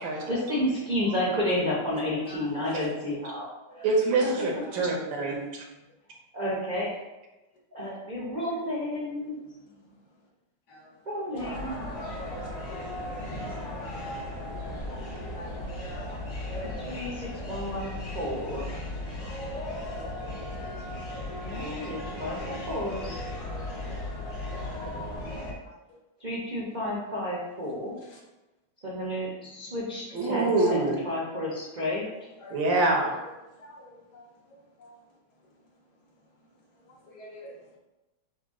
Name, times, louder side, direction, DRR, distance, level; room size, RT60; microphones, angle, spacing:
voice 1, 0.3-3.5 6.3-6.9 7.7-9.4 11.1-11.9 16.6-18.9 21.4-23.2 26.2-28.0 28.8-32.0, left 1 dB, 45° right, -5 dB, 0.5 m, -31 dB
voice 2, 3.8-5.6 30.1-31.0 32.5-33.1, right 2 dB, 80° right, 0 dB, 1.6 m, -25 dB
voice 3, 10.7-11.8 12.3-14.0 15.3-16.2 16.4-16.9 20.7-20.8 21.1-21.9 22.3-22.9 23.4-25.0 25.9-26.0 28.0-28.2 30.6-31.0 32.1-32.6 33.6-35.0 36.9-37.6, equal, 65° left, -2 dB, 1.5 m, -48 dB
sound 1, 11.4-25.5, left 1 dB, 40° left, 0.5 m, -36 dB
6.6 x 2.3 x 3.6 m, 1.0 s
omnidirectional pair, 2.0 m